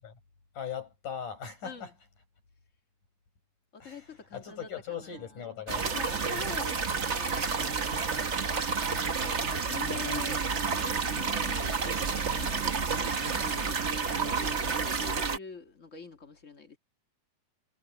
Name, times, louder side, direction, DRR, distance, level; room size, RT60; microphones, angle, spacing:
voice 1, 0.5-1.9 3.8-6.0 6.3-6.5, left 8 dB, 75° left, 9.1 m, -40 dB
voice 2, 3.7-5.1 5.9-7.6 9.2-10.5 10.8-16.8, left 4 dB, 30° left, 1.7 m, -44 dB
sound 1, 5.7-15.4, right 5 dB, 55° right, 0.7 m, -30 dB
omnidirectional pair, 3.6 m